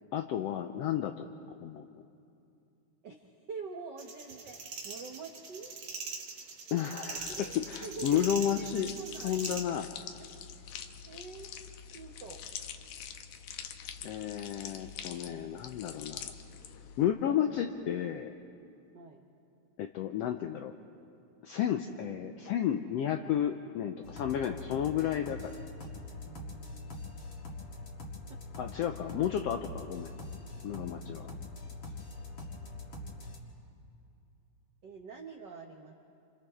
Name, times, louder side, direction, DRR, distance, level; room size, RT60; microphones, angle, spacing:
voice 1, 0.1-1.3 1.6-2.0 6.7-8.9 9.2-9.9 14.0-16.3 17.0-18.3 19.8-20.7 21.4-25.6 28.6-30.1 30.6-31.3, left 10 dB, 90° left, 6 dB, 1.4 m, -32 dB
voice 2, 3.0-4.6 4.8-5.7 7.3-9.4 10.5-10.7 11.1-11.5 11.9-12.4 18.9-19.2 26.3-27.5 30.6-30.8 34.8-35.9, right 4 dB, 85° right, 3 dB, 0.9 m, -46 dB
sound 1, 4.0-9.6, right 4 dB, 50° right, 2.0 m, -42 dB
sound 2, 7.2-17.0, left 8 dB, 70° left, 2.1 m, -45 dB
sound 3, 24.0-33.4, left 2 dB, 40° left, 2.5 m, -43 dB
28.0 x 28.0 x 3.6 m, 2.6 s
omnidirectional pair, 3.6 m